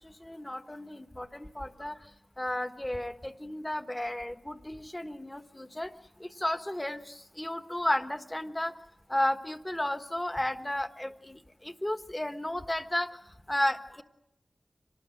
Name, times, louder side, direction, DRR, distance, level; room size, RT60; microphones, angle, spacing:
voice 1, 0.0-5.9 6.2-8.7 9.1-14.0, left 1 dB, 20° left, 9 dB, 1.3 m, -33 dB
25.0 x 19.0 x 7.6 m, 0.83 s
wide cardioid pair, 60°, 0 cm